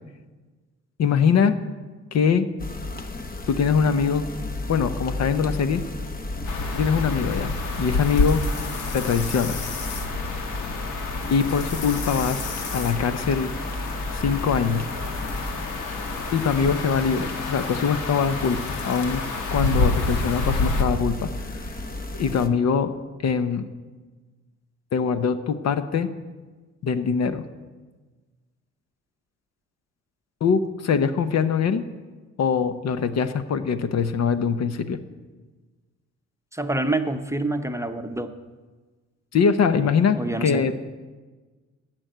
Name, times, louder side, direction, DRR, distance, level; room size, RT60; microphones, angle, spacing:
voice 1, 1.0-1.5 2.1-2.5 3.5-4.2 4.7-5.8 6.7-8.4 8.9-9.6 11.3-13.5 14.1-14.9 16.3-19.2 19.5-21.7 22.1-22.9 23.2-23.7 24.9-26.1 26.8-27.4 30.4-31.8 32.4-35.0 39.3-40.8, left 6 dB, 60° left, 11 dB, 0.9 m, -23 dB
sound 1, 2.6-22.5, left 2 dB, 30° left, 0.9 m, -34 dB
sound 2, 6.5-20.8, left 3 dB, 85° left, 1.7 m, -29 dB
voice 2, 36.5-38.3 40.1-40.7, right 2 dB, 10° right, 7 dB, 0.8 m, -27 dB
14.0 x 6.1 x 9.1 m, 1.3 s
cardioid pair, 90°, 30 cm